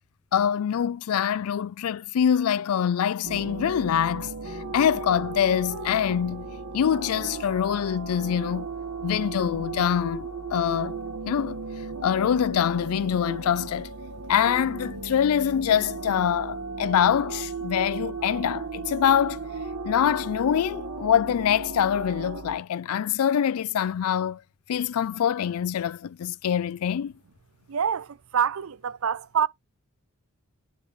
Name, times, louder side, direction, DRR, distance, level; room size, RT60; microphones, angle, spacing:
voice 1, 0.3-8.7 9.0-11.0 11.3-11.6 12.0-13.9 14.3-19.4 19.8-24.4 24.7-27.1, left 9 dB, 80° left, 0.3 m, -24 dB
sound 1, 3.2-22.6, right 3 dB, 90° right, 1.4 m, -36 dB
voice 2, 27.7-29.5, right 7 dB, 70° right, 0.5 m, -26 dB
10.0 x 3.8 x 3.1 m
head